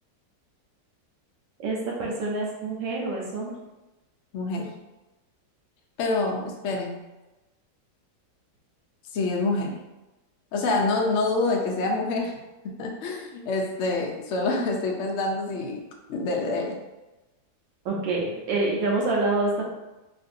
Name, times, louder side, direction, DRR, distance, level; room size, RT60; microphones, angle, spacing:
voice 1, 1.6-3.5 17.8-19.6, right 2 dB, 90° right, -2 dB, 1.6 m, -26 dB
voice 2, 4.3-4.7 6.0-7.0 9.1-9.7 10.5-12.3 12.6-15.8 16.1-16.8, left 3 dB, 80° left, 0 dB, 0.6 m, -26 dB
4.6 x 2.6 x 2.5 m, 1.1 s
omnidirectional pair, 2.0 m